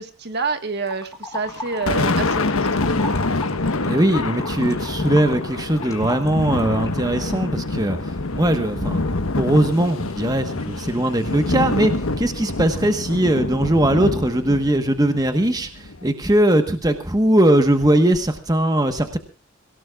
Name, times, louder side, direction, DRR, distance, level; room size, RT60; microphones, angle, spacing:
voice 1, 0.0-3.1, right 4 dB, 50° right, 8 dB, 1.5 m, -28 dB
sound 1, 0.9-2.4 2.6-7.1, left 2 dB, 15° left, 2.3 m, -35 dB
Thunder, 1.5-16.1, left 2 dB, 80° left, 1.2 m, -26 dB
voice 2, 3.8-9.0 9.4-19.2, right 1 dB, 20° right, 7 dB, 1.2 m, -20 dB
25.0 x 17.5 x 2.4 m, 0.32 s
head